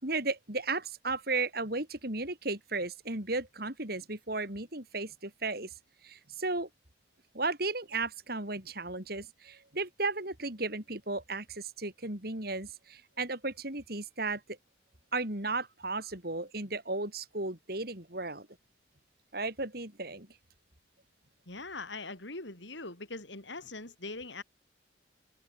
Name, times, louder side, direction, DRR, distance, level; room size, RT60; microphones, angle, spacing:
voice 1, 0.0-5.7 6.0-6.7 7.3-14.6 15.1-18.5 19.3-20.3, right 3 dB, 55° right, 4.7 m, -35 dB
voice 2, 21.5-24.4, left 3 dB, 75° left, 5.4 m, -42 dB
head